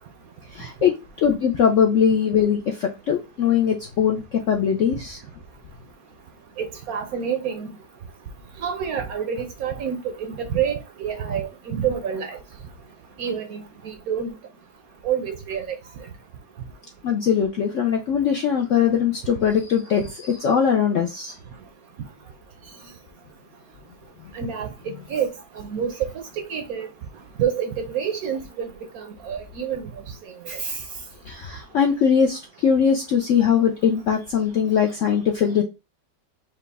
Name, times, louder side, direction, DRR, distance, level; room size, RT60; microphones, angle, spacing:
voice 1, 0.5-5.2 17.0-21.3 24.2-24.4 31.3-35.6, left 7 dB, 70° left, 0.7 m, -21 dB
voice 2, 6.6-7.7 8.6-12.4 13.2-14.3 15.0-15.8 24.3-24.7 25.1-26.2 26.5-26.9 27.4-28.7 28.9-29.9 30.5-30.8, right 8 dB, 65° right, 0.9 m, -28 dB
4.9 x 2.4 x 3.4 m
omnidirectional pair, 1.9 m